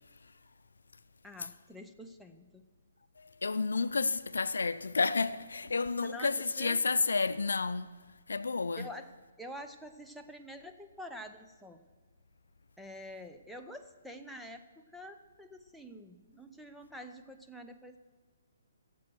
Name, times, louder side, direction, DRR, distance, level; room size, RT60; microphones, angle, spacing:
voice 1, 1.2-2.7 6.0-6.8 8.8-9.1 9.4-11.8 12.8-18.0, equal, ahead, 0.7 m, -47 dB
voice 2, 3.2-7.9 8.3-8.9, left 4 dB, 85° left, 0.5 m, -31 dB
15.5 x 7.6 x 6.1 m
hypercardioid pair, 150°, 0 cm